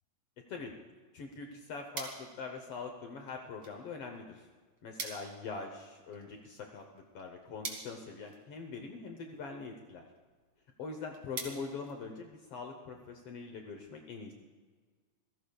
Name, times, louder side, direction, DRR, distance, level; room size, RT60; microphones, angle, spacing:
voice 1, 1.1-4.5 4.8-10.0 10.8-14.3, left 4 dB, 85° left, 3 dB, 1.3 m, -43 dB
sound 1, 1.9-12.7, right 4 dB, 35° right, 2.3 m, -49 dB
27.5 x 17.0 x 2.3 m, 1.5 s
omnidirectional pair, 4.1 m